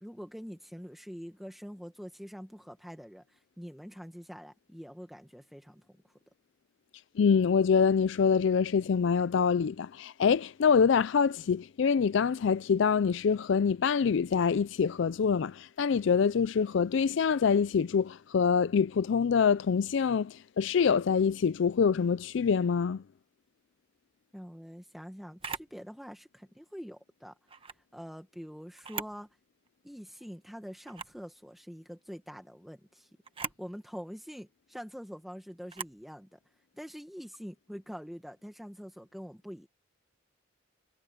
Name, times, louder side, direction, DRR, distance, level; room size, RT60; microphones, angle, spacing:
voice 1, 0.0-5.8 24.3-27.4 27.9-29.3 29.8-33.1 33.4-36.4 36.7-39.7, equal, ahead, 1.4 m, -45 dB
voice 2, 7.2-23.0, left 6 dB, 65° left, 0.4 m, -25 dB
Camera, 25.4-25.7 27.5-27.8 28.7-29.2 29.7-29.8 30.8-31.2 33.2-33.6 35.7-36.0, right 5 dB, 25° right, 1.2 m, -40 dB
head